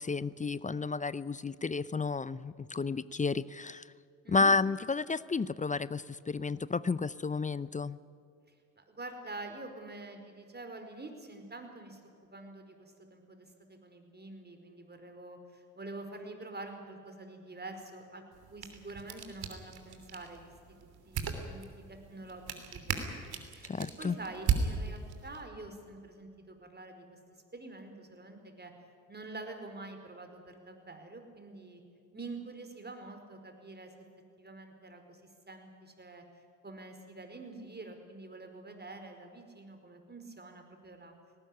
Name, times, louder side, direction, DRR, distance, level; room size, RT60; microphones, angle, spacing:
voice 1, 0.0-3.8 4.3-8.0 23.7-24.1, left 4 dB, 15° left, 18 dB, 0.6 m, -31 dB
voice 2, 4.2-4.5 8.8-12.0 12.3-18.2 18.5-20.5 20.8-27.2 27.5-28.7 29.1-31.8 32.1-33.9 34.4-35.2 35.5-36.2 36.6-41.1, right 2 dB, 20° right, 6 dB, 4.8 m, -46 dB
sound 1, 18.3-25.4, right 6 dB, 55° right, 3.2 m, -37 dB
19.0 x 18.0 x 10.0 m, 2.5 s
hypercardioid pair, 60°, 44 cm